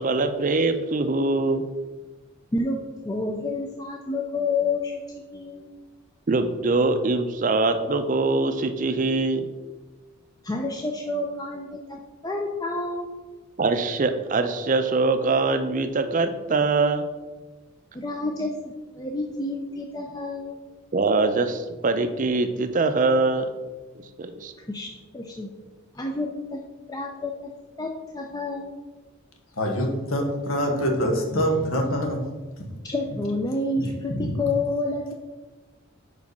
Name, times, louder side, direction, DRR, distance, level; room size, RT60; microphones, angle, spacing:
voice 1, 0.0-1.6 6.3-9.5 13.6-17.1 20.9-23.5 24.0-24.5, right 3 dB, 40° right, 8 dB, 0.5 m, -23 dB
voice 2, 3.0-5.0 5.3-5.7 10.4-12.0 12.2-13.1 17.9-20.6 24.7-25.5 25.9-26.6 26.9-27.3 27.8-28.7 32.9-35.1, left 2 dB, 20° left, 1 dB, 0.4 m, -29 dB
voice 3, 29.6-32.2 32.6-32.7 33.8-34.4, equal, 80° left, 2 dB, 1.2 m, -25 dB
5.0 x 4.7 x 5.3 m, 1.2 s
head